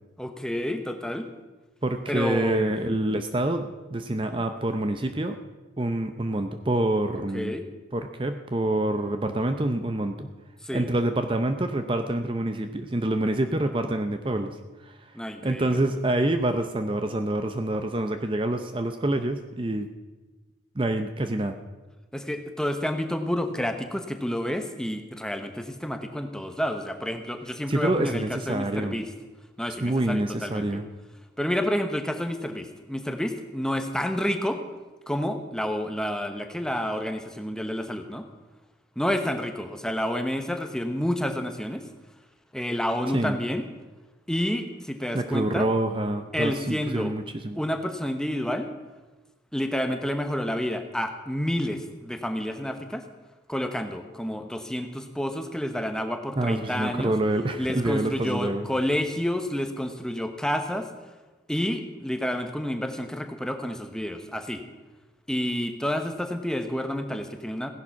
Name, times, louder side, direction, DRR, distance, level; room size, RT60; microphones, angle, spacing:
voice 1, 0.2-1.3 2.1-2.7 4.3-4.4 7.3-7.7 10.6-10.9 15.1-15.8 22.1-29.1 29.6-30.8 31.4-34.6 35.1-38.3 39.0-41.8 42.5-43.6 44.3-45.7 46.3-47.1 47.6-48.7 49.5-53.0 53.5-57.1 57.6-60.9 61.5-64.6 65.3-67.7, equal, 5° left, 7 dB, 0.9 m, -29 dB
voice 2, 1.8-5.4 5.8-7.5 7.9-10.3 10.7-14.6 14.8-15.1 15.4-19.9 20.8-21.6 27.7-29.0 29.8-30.9 43.1-43.4 45.1-47.6 56.4-58.7, right 1 dB, 25° right, 8 dB, 0.6 m, -26 dB
16.0 x 10.5 x 5.8 m, 1.2 s
head